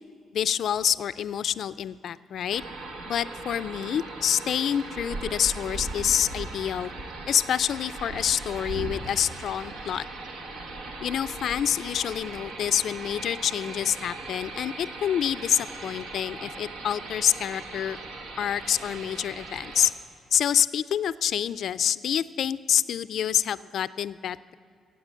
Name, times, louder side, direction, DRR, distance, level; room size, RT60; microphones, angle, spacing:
voice 1, 0.3-2.6 3.1-6.9 7.3-10.1 11.0-18.0 18.4-19.9 20.3-24.5, left 9 dB, 65° left, 16 dB, 0.3 m, -27 dB
sound 1, 2.5-19.9, right 2 dB, 85° right, 1.3 m, -38 dB
16.5 x 8.0 x 6.3 m, 2.5 s
cardioid pair, 90°, 0 cm